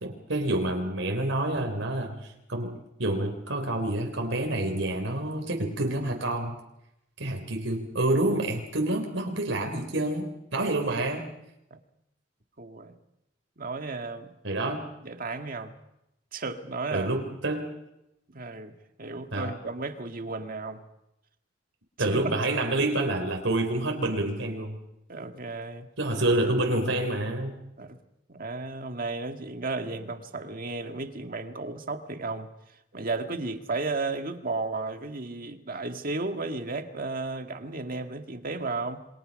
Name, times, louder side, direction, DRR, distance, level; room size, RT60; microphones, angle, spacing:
voice 1, 0.0-6.6 7.2-11.3 14.4-14.9 16.9-17.8 19.3-19.5 22.0-24.8 26.0-27.6, right 1 dB, 80° right, 3 dB, 3.4 m, -28 dB
voice 2, 12.6-13.0 13.6-14.4 15.0-15.7 16.3-17.1 18.3-20.8 22.0-22.3 25.1-25.9 27.8-28.0 28.3-32.5 32.9-39.1, right 3 dB, 45° right, 6 dB, 1.9 m, -34 dB
28.0 x 24.0 x 5.3 m, 0.85 s
head